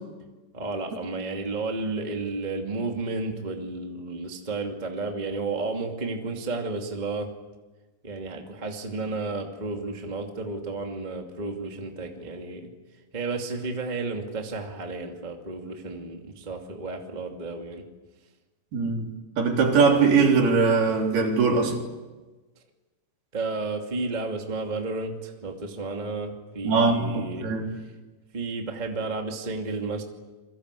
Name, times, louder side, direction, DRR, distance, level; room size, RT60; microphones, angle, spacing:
voice 1, 0.5-7.3 8.0-12.7 13.1-17.8 23.3-27.5 28.3-30.0, right 3 dB, 20° right, 2 dB, 1.3 m, -32 dB
voice 2, 18.7-21.8 26.6-27.7, right 4 dB, 60° right, 1 dB, 5.4 m, -21 dB
28.5 x 23.5 x 8.3 m, 1.2 s
omnidirectional pair, 5.3 m